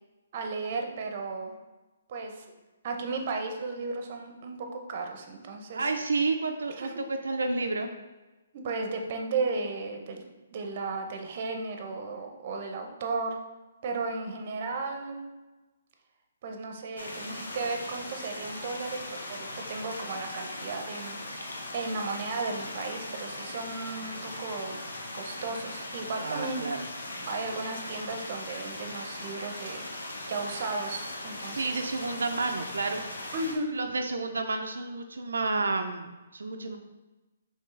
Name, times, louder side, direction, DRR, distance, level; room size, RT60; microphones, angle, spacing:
voice 1, 0.3-1.5 2.1-2.5 2.8-5.9 6.8-6.9 8.5-10.2 10.5-13.4 13.8-15.2 16.4-21.2 21.7-24.8 25.1-26.6 27.3-29.8 30.2-31.8 33.3-33.7, right 3 dB, 45° right, 4 dB, 0.6 m, -34 dB
voice 2, 5.7-7.9 26.2-26.9 31.5-33.0 33.7-36.8, right 3 dB, 90° right, 4 dB, 0.3 m, -30 dB
sound 1, 17.0-33.5, left 1 dB, 85° left, 0.8 m, -39 dB
4.4 x 3.1 x 3.2 m, 1.2 s
hypercardioid pair, 155°, 0 cm